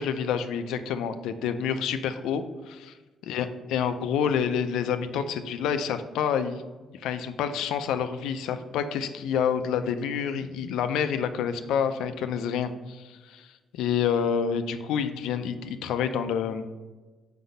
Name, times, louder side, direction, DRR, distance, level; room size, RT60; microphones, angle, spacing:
voice 1, 0.0-2.9 3.3-6.6 7.0-16.7, left 7 dB, 90° left, 10 dB, 0.5 m, -28 dB
5.2 x 4.0 x 5.2 m, 1.2 s
cardioid pair, 90°, 0 cm